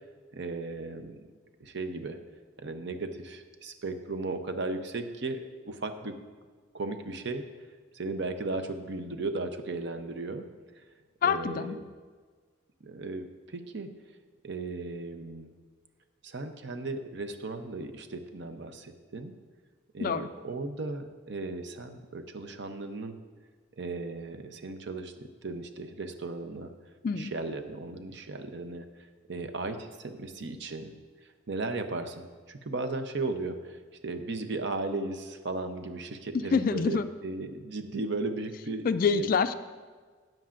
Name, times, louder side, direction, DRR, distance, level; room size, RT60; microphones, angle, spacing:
voice 1, 0.3-1.2 1.6-2.2 2.6-6.2 6.7-7.4 7.9-10.5 10.7-10.8 11.2-11.8 12.8-13.9 14.4-15.5 16.2-19.3 19.9-23.2 23.8-26.7 27.1-28.9 29.3-30.9 31.2-39.3, right 3 dB, 60° right, 7 dB, 0.7 m, -36 dB
voice 2, 11.2-11.8 20.0-20.3 27.0-27.3 36.5-37.1 38.8-39.5, left 6 dB, 45° left, 12 dB, 0.3 m, -26 dB
13.0 x 9.1 x 2.5 m, 1.5 s
head